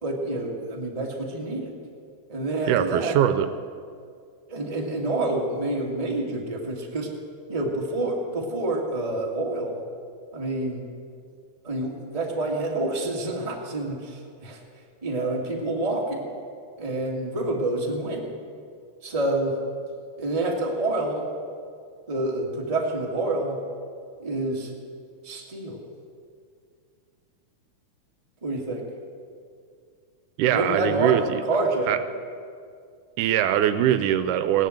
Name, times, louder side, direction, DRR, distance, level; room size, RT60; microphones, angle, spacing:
voice 1, 0.0-1.7 2.3-3.2 4.5-7.1 7.5-9.8 10.3-10.8 11.6-14.6 15.0-16.3 16.8-18.4 19.0-19.5 20.2-21.3 22.1-23.6 24.2-24.7 25.2-25.8 28.4-28.8 30.5-31.1 31.4-31.9, right 2 dB, 15° right, -1 dB, 1.5 m, -27 dB
voice 2, 2.7-3.5 30.4-31.4 31.9-32.0 33.2-34.7, right 11 dB, 80° right, 11 dB, 2.1 m, -22 dB
17.5 x 10.5 x 7.8 m, 2.2 s
omnidirectional pair, 3.6 m